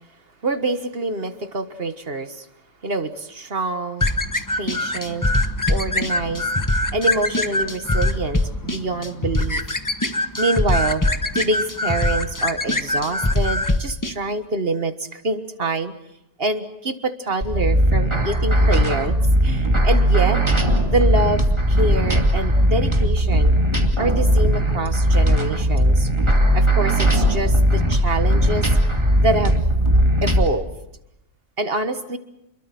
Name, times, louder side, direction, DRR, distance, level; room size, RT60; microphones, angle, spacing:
voice 1, 0.4-2.5 2.8-4.1 4.5-5.3 5.7-6.5 6.9-9.6 10.2-11.0 11.3-15.9 16.4-20.4 20.8-23.5 24.0-26.1 26.5-28.7 29.2-29.6 30.2-30.7 31.6-32.2, right 2 dB, 40° right, 10 dB, 1.7 m, -25 dB
sound 1, 4.0-14.1, left 1 dB, 15° left, 1.1 m, -22 dB
sound 2, 17.4-30.5, equal, 20° right, 2.5 m, -18 dB
29.5 x 22.5 x 6.0 m, 0.86 s
omnidirectional pair, 1.6 m